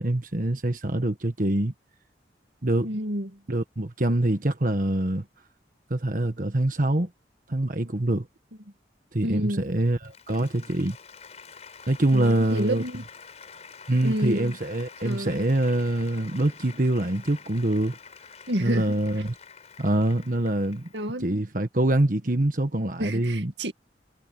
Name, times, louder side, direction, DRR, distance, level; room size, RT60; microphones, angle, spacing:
voice 1, 0.0-1.7 2.6-3.0 3.5-5.3 5.9-7.1 7.5-8.3 9.1-11.0 11.9-12.8 13.9-18.0 18.6-19.3 19.8-20.9 21.2-23.5, right 1 dB, 50° right, 1.4 m, -25 dB
voice 2, 2.8-3.3 9.2-9.6 12.1-13.0 14.0-14.5 15.0-15.4 18.5-19.0 20.9-21.4 23.0-23.7, equal, 80° right, 2.1 m, -29 dB
Applause, 9.6-21.2, left 6 dB, 40° left, 5.6 m, -47 dB
head